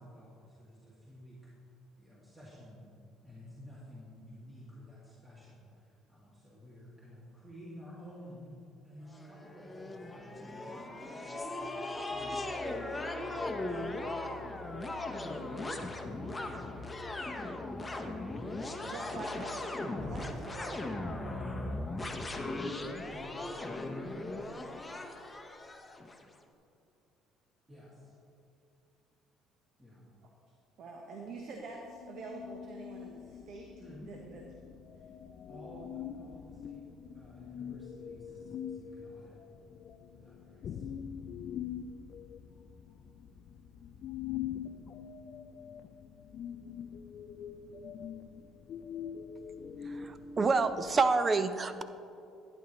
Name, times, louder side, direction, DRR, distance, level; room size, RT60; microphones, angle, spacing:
voice 1, 0.0-1.5 1.9-2.8 3.2-8.5 8.8-15.1 20.0-22.3 23.0-24.5 27.7-28.1 29.8-30.0 33.8-34.1 35.5-36.8 37.1-39.4 40.1-40.9, equal, 15° right, -8 dB, 2.2 m, -52 dB
sound 1, 9.1-26.2, left 2 dB, 15° left, 0.8 m, -38 dB
voice 2, 18.8-20.9 22.4-22.5 30.8-33.7 34.0-34.4, right 3 dB, 60° right, 1 dB, 1.0 m, -45 dB
sound 2, 31.9-51.0, left 8 dB, 55° left, 0.4 m, -44 dB
voice 3, 49.8-51.8, right 4 dB, 30° right, 11 dB, 0.5 m, -28 dB
11.5 x 9.9 x 3.1 m, 2.6 s
cardioid pair, 95°, 0 cm